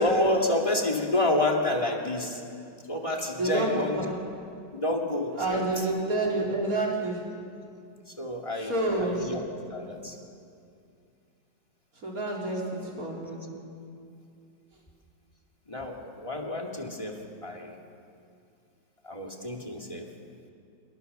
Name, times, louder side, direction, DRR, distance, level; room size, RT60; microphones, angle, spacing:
voice 1, 0.0-2.4 2.9-4.1 4.7-5.9 8.1-9.4 9.7-10.2 15.7-17.8 19.0-20.1, left 1 dB, 15° left, 0 dB, 2.6 m, -29 dB
voice 2, 5.3-7.2 8.6-9.3 12.0-13.6, right 2 dB, 50° right, -2 dB, 4.7 m, -29 dB
25.5 x 24.0 x 6.9 m, 2.4 s
omnidirectional pair, 2.0 m